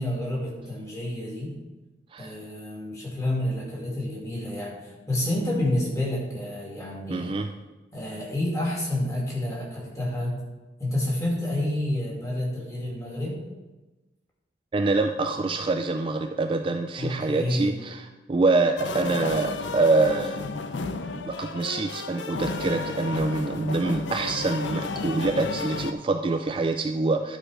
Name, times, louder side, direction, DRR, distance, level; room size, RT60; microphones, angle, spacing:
voice 1, 0.0-1.6 2.2-7.4 7.9-10.4 10.8-13.4 16.9-17.7, left 1 dB, 15° left, -4 dB, 2.3 m, -29 dB
voice 2, 7.1-7.5 14.7-20.4 21.2-27.4, right 3 dB, 25° right, 5 dB, 0.3 m, -25 dB
sound 1, 18.8-25.9, left 3 dB, 70° left, 0.6 m, -32 dB
11.0 x 5.0 x 4.9 m, 1.1 s
head